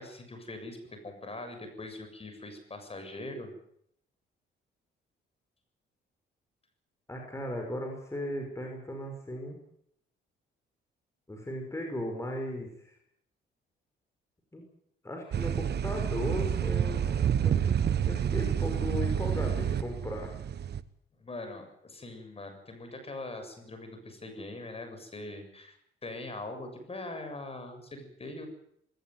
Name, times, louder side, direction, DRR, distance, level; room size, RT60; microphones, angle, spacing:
voice 1, 0.0-3.5 21.2-25.8 26.0-28.5, left 2 dB, 30° left, 6 dB, 7.3 m, -42 dB
voice 2, 7.1-9.6 11.3-13.0 14.5-14.6 15.0-20.4, left 1 dB, 15° left, 2 dB, 5.9 m, -37 dB
sound 1, 15.3-20.8, right 8 dB, 55° right, 1.2 m, -29 dB
20.5 x 18.0 x 9.4 m, 0.70 s
cardioid pair, 90°, 20 cm